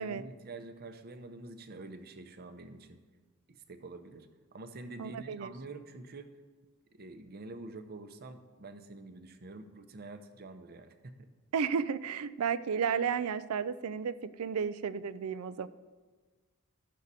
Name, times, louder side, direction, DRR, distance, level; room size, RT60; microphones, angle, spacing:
voice 1, 0.0-3.0 3.5-4.3 4.5-6.3 6.9-11.3, right 2 dB, 45° right, 8 dB, 0.7 m, -47 dB
voice 2, 5.0-5.5 11.5-15.7, right 6 dB, 85° right, 15 dB, 0.4 m, -33 dB
13.0 x 6.4 x 4.1 m, 1.4 s
head